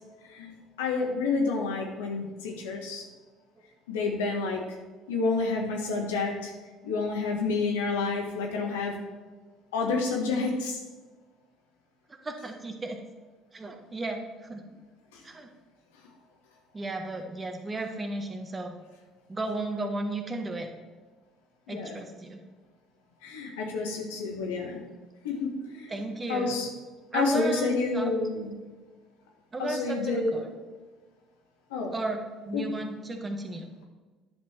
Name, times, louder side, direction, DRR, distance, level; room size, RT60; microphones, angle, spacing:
voice 1, 0.3-3.0 3.9-4.6 5.1-6.5 6.8-9.0 9.7-10.8 15.1-15.2 21.7-21.9 23.2-24.8 25.2-25.9 26.3-26.7 27.1-28.6 29.6-30.4 31.7-31.9 32.5-32.9, left 3 dB, 75° left, 0 dB, 1.5 m, -29 dB
voice 2, 12.2-13.0 13.5-14.6 15.2-15.5 16.7-18.8 19.3-20.7 21.7-22.4 25.9-26.6 27.1-28.1 29.5-30.5 31.9-33.7, right 2 dB, 25° right, 4 dB, 1.4 m, -34 dB
10.5 x 5.4 x 4.4 m, 1.3 s
hypercardioid pair, 60°, 0 cm